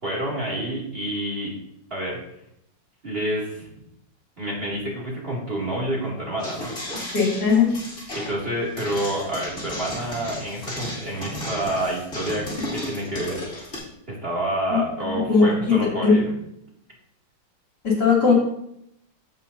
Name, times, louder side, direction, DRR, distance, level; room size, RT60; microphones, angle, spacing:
voice 1, 0.0-1.5 1.9-2.2 3.0-3.7 4.4-6.7 8.1-13.4 14.1-16.3, right 1 dB, 30° right, -5 dB, 2.8 m, -28 dB
sound 1, 6.4-13.8, left 1 dB, 40° left, 3.4 m, -34 dB
voice 2, 7.1-7.9 14.7-16.2 17.8-18.3, left 5 dB, 70° left, -4 dB, 3.3 m, -19 dB
16.0 x 5.5 x 2.8 m, 0.77 s
omnidirectional pair, 1.9 m